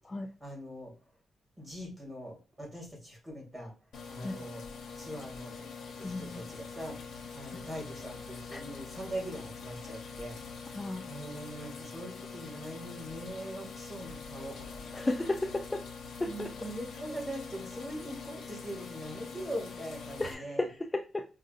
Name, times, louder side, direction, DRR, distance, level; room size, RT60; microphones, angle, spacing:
voice 1, 0.4-0.9 1.6-3.7 4.1-4.6 5.0-5.7 6.0-10.4 11.1-14.9 16.2-20.7, equal, 15° right, -1 dB, 2.0 m, -42 dB
sound 1, 3.9-20.3, left 5 dB, 80° left, 0.9 m, -44 dB
voice 2, 6.0-6.4 8.5-8.6 10.7-11.0 14.9-15.8 16.2-16.5 20.2-21.3, left 2 dB, 15° left, 4 dB, 0.4 m, -33 dB
4.7 x 2.6 x 2.5 m, 0.35 s
cardioid pair, 115°, 0 cm